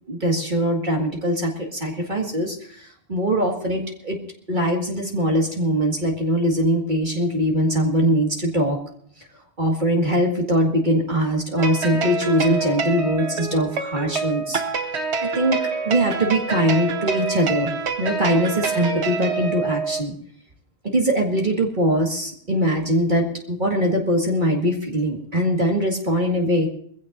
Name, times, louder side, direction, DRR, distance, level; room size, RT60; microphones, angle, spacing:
voice 1, 0.1-4.2 4.5-8.8 9.6-14.6 15.2-15.6 15.8-17.7 18.0-20.1 20.8-26.7, equal, 50° right, 0 dB, 2.0 m, -22 dB
sound 1, 11.6-20.0, right 4 dB, 85° right, 1.4 m, -26 dB
22.5 x 15.5 x 2.6 m, 0.62 s
omnidirectional pair, 1.1 m